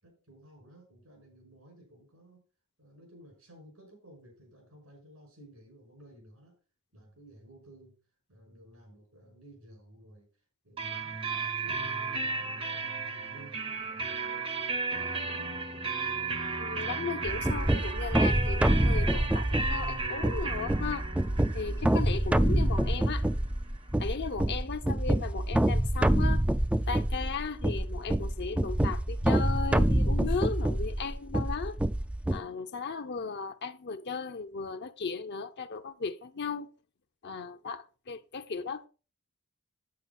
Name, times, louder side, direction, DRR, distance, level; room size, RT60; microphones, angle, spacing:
voice 1, 0.0-2.4 2.8-6.5 6.9-7.9 8.3-10.3 10.6-14.2 15.2-15.9 22.4-23.3, right 1 dB, 85° right, 6.0 m, -55 dB
sound 1, 10.8-24.3, right 4 dB, 25° right, 0.7 m, -35 dB
voice 2, 16.6-21.1 21.5-23.3 24.0-26.4 26.9-31.8 32.3-36.7 37.2-38.9, left 5 dB, 55° left, 0.7 m, -36 dB
sound 2, 17.3-32.4, right 1 dB, 5° right, 0.4 m, -27 dB
9.6 x 8.3 x 4.2 m
head